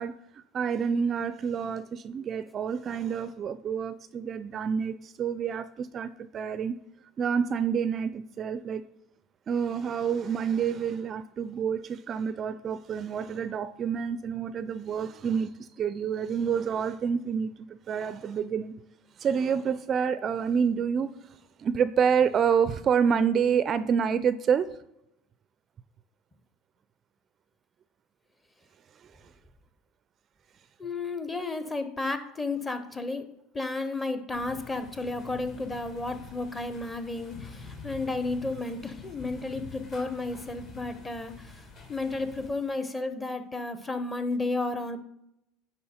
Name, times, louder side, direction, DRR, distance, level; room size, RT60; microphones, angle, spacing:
voice 1, 0.0-6.7 7.2-8.9 9.5-18.7 19.2-21.1 21.6-24.7 29.0-29.1, right 7 dB, 35° right, 14 dB, 0.4 m, -28 dB
voice 2, 30.8-33.3 33.5-41.5 41.9-45.0, left 3 dB, 15° left, 10 dB, 0.8 m, -32 dB
sound 1, 34.3-42.5, left 4 dB, 45° left, 2.2 m, -47 dB
10.0 x 4.2 x 4.3 m, 0.81 s
supercardioid pair, 120°, 0 cm